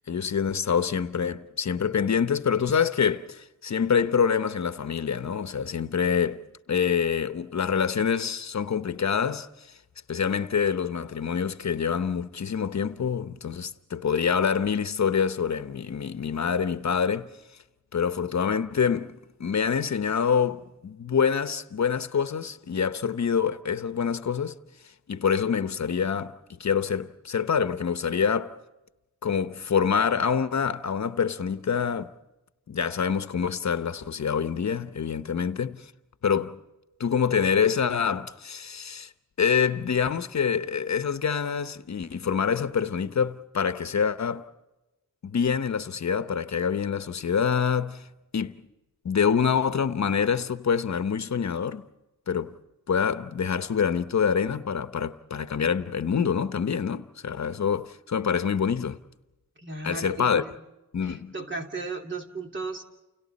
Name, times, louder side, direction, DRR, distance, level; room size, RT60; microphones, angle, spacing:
voice 1, 0.1-6.4 6.7-9.7 10.1-17.3 17.9-24.6 25.1-28.6 29.2-32.1 32.7-35.9 36.2-36.6 37.0-39.1 39.4-44.5 45.2-48.1 48.3-48.6 49.0-51.8 52.3-52.5 52.9-59.0 59.8-60.4 60.9-61.3, left 7 dB, 55° left, 1.0 m, -26 dB
voice 2, 59.6-60.6 61.0-62.8, right 3 dB, 35° right, 3.0 m, -35 dB
30.0 x 29.5 x 4.2 m
wide cardioid pair, 130°, 32 cm